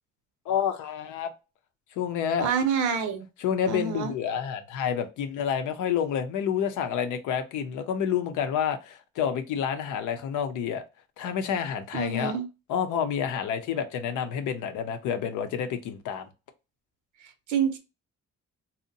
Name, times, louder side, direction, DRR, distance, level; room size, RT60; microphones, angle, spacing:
voice 1, 0.5-1.3 2.0-2.5 3.4-10.8 11.2-12.3 12.7-16.3, left 8 dB, 90° left, 8 dB, 0.6 m, -29 dB
voice 2, 2.4-3.3 3.7-4.1 11.9-12.5 17.5-17.8, right 6 dB, 80° right, 7 dB, 0.7 m, -27 dB
2.7 x 2.1 x 2.6 m, 0.28 s
cardioid pair, 90°, 30 cm